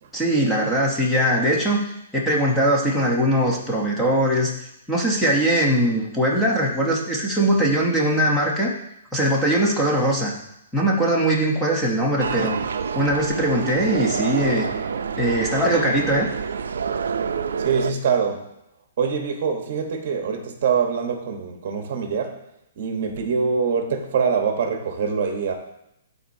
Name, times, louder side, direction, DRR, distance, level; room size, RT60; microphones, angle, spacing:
voice 1, 0.1-1.8 2.1-4.5 4.9-8.7 9.1-10.3 10.7-12.6 12.9-14.7 15.2-16.3, right 1 dB, 5° left, -3 dB, 0.9 m, -21 dB
sound 1, 12.2-17.9, right 6 dB, 90° right, 0.4 m, -27 dB
voice 2, 17.6-18.4 19.0-22.4 22.8-25.5, right 6 dB, 40° right, 4 dB, 1.1 m, -24 dB
12.0 x 4.1 x 2.7 m, 0.80 s
hypercardioid pair, 175°, 0 cm